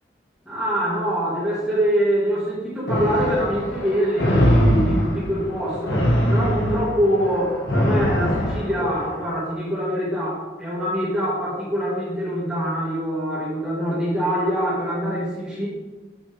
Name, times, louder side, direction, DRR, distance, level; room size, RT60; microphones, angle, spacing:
voice 1, 0.5-15.7, equal, 5° right, -11 dB, 2.0 m, -24 dB
beast panting, 2.9-9.3, equal, 90° left, 1.6 m, -22 dB
7.9 x 5.9 x 3.5 m, 1.2 s
head